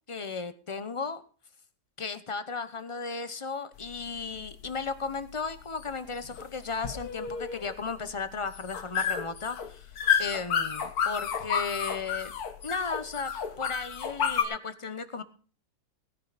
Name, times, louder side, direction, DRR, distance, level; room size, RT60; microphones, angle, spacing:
voice 1, 0.1-1.2 2.0-9.9 10.2-12.3 12.6-13.3 13.6-15.2, left 4 dB, 30° left, 12 dB, 0.6 m, -35 dB
sound 1, 3.8-14.4, left 7 dB, 65° left, 1.6 m, -31 dB
17.5 x 10.0 x 4.1 m, 0.39 s
omnidirectional pair, 1.8 m